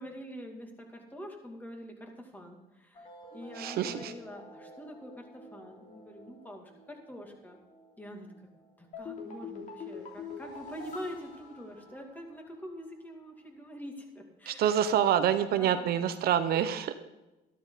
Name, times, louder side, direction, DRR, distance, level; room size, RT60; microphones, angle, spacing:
voice 1, 0.0-7.6 8.0-8.3 8.8-14.8 15.4-16.1, equal, 10° left, 2 dB, 2.5 m, -45 dB
sound 1, 2.9-9.9, equal, 35° left, 2.5 m, -52 dB
voice 2, 3.6-4.1 14.5-16.9, right 9 dB, 65° right, 10 dB, 0.8 m, -27 dB
sound 2, 8.9-12.4 12.6-12.7, left 5 dB, 50° left, 3.2 m, -43 dB
13.0 x 12.5 x 4.0 m, 1.0 s
cardioid pair, 110°, 17 cm